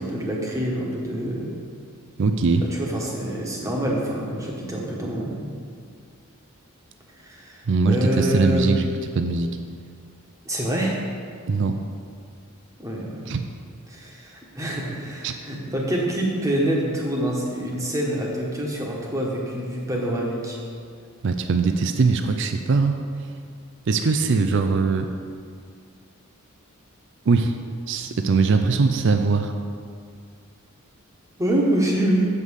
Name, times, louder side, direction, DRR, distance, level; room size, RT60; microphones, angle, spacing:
voice 1, 0.0-1.5 2.7-5.4 7.2-8.7 10.4-11.0 12.8-13.3 13.9-20.6 31.4-32.3, right 1 dB, 15° right, -2 dB, 1.2 m, -26 dB
voice 2, 2.2-2.6 7.7-8.9 9.1-9.6 11.5-11.7 13.3-13.4 15.2-15.3 21.2-23.0 23.9-25.1 27.3-27.6 27.9-29.5, right 4 dB, 55° right, 7 dB, 0.4 m, -21 dB
8.0 x 5.5 x 6.4 m, 2.2 s
head